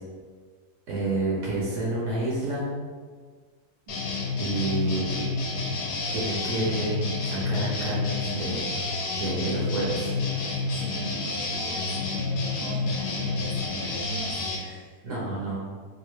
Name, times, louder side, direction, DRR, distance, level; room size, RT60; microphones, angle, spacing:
voice 1, 0.9-2.7 4.4-5.3 6.1-8.7 9.2-10.2 15.0-15.7, right 2 dB, 60° right, -5 dB, 1.0 m, -29 dB
sound 1, 3.9-14.6, left 3 dB, 90° left, 1.2 m, -29 dB
voice 2, 10.4-15.6, right 2 dB, 15° left, -9 dB, 0.7 m, -41 dB
3.3 x 2.5 x 3.0 m, 1.6 s
omnidirectional pair, 1.7 m